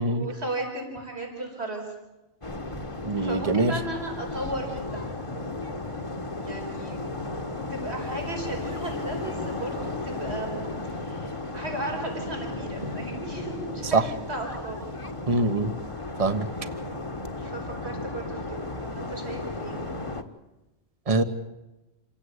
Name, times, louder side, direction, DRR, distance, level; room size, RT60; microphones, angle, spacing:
voice 1, 0.0-1.9 3.2-5.0 6.4-7.1 7.7-14.8 17.4-19.8, right 1 dB, 85° right, 1 dB, 5.0 m, -35 dB
sound 1, 2.4-20.2, left 2 dB, 30° left, 1.6 m, -34 dB
voice 2, 3.0-3.7 13.9-14.1 15.3-15.7 16.2-16.5 21.1-21.2, right 2 dB, 35° right, 9 dB, 1.4 m, -23 dB
28.0 x 17.5 x 8.4 m, 1.0 s
omnidirectional pair, 1.1 m